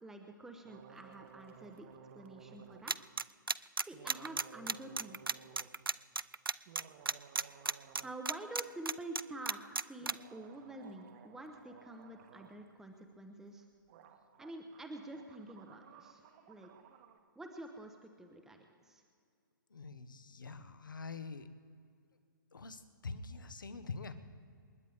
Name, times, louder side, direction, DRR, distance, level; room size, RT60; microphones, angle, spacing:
voice 1, 0.0-1.9 2.1-3.0 3.5-5.2 8.0-13.7 14.4-16.2 16.5-16.7 17.4-19.0, right 2 dB, 5° right, 4 dB, 1.0 m, -48 dB
sound 1, 0.6-2.9 3.9-5.7 6.5-8.2 8.4-8.5 10.0-12.7 13.6-13.7 13.9-17.2, right 7 dB, 35° right, 1.5 m, -57 dB
sound 2, 2.9-10.1, right 3 dB, 85° right, 0.4 m, -33 dB
voice 2, 19.7-21.5 22.5-24.1, left 4 dB, 65° left, 11 dB, 1.3 m, -45 dB
28.0 x 10.5 x 3.5 m, 2.3 s
figure-of-eight pair, 125°, 11 cm